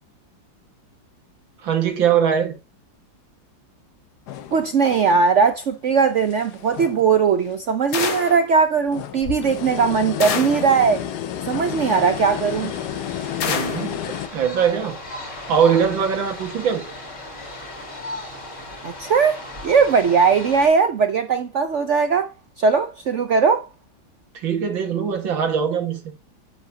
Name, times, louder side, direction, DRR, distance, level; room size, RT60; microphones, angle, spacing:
voice 1, 1.6-2.5 13.5-14.0 14.3-15.0 15.5-16.8 24.4-26.0, right 7 dB, 85° right, 2.3 m, -21 dB
sound 1, 4.3-5.5 5.9-7.5 7.9-8.0 8.8-14.3, left 10 dB, 65° left, 1.3 m, -32 dB
voice 2, 4.5-11.1 11.4-12.7 18.8-22.3 22.6-23.7, right 5 dB, 70° right, 0.7 m, -19 dB
sound 2, 7.9-8.5 10.2-10.7 13.4-13.9, left 6 dB, 90° left, 2.1 m, -26 dB
sound 3, 11.7-20.7, left 2 dB, 40° left, 3.1 m, -36 dB
8.0 x 8.0 x 2.7 m
omnidirectional pair, 2.0 m